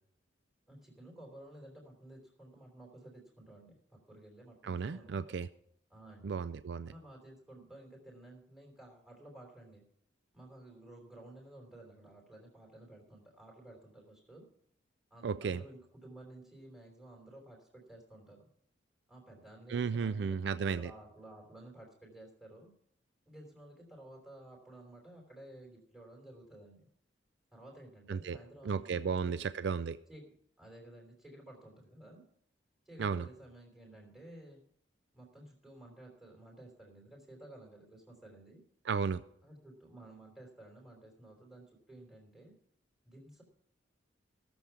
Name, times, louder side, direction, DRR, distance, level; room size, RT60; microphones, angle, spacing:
voice 1, 0.7-5.4 5.9-6.4 6.8-9.8 10.3-14.4 15.1-18.5 19.1-22.7 23.3-26.9 27.5-29.4 30.1-30.3 30.6-32.2 32.8-34.6 35.1-38.6 39.4-42.5 43.0-43.4, right 1 dB, ahead, -1 dB, 3.1 m, -54 dB
voice 2, 4.6-5.5 6.2-6.9 15.2-15.6 19.7-20.9 28.1-28.4 28.6-30.0 33.0-33.3 38.9-39.2, right 5 dB, 65° right, 14 dB, 0.4 m, -34 dB
17.0 x 7.1 x 5.9 m, 0.69 s
head